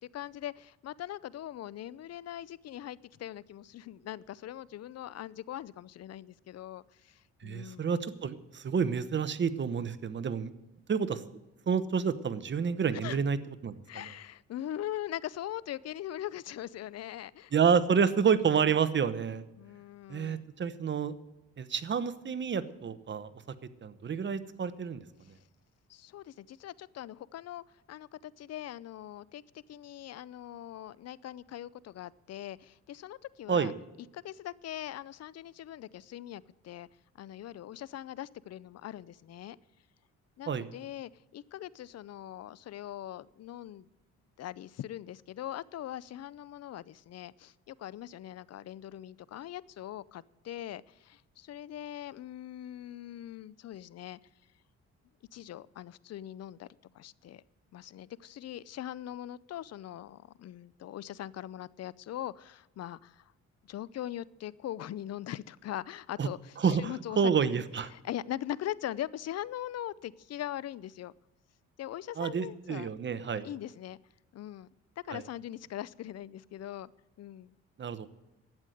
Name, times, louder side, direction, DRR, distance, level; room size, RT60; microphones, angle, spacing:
voice 1, 0.1-7.9 13.0-13.2 13.9-17.5 19.6-20.5 25.2-25.3 25.9-29.4 29.7-33.7 34.1-36.9 37.2-39.6 40.4-43.9 44.4-54.2 55.3-56.7 56.9-57.4 57.7-63.2 63.6-71.1 71.8-72.9 73.3-74.0 74.3-74.7 75.0-76.9 77.2-77.5, left 12 dB, 55° left, 21 dB, 0.5 m, -41 dB
voice 2, 7.4-10.5 10.9-11.2 11.7-13.4 13.6-13.8 17.5-19.4 20.1-21.1 21.6-23.3 23.8-25.0 33.5-33.7 40.5-40.7 66.2-66.3 66.6-67.9 72.2-73.5 75.1-75.2 77.8-78.1, right 6 dB, 40° right, 13 dB, 1.0 m, -29 dB
12.0 x 8.2 x 9.1 m, 0.95 s
cardioid pair, 90°, 30 cm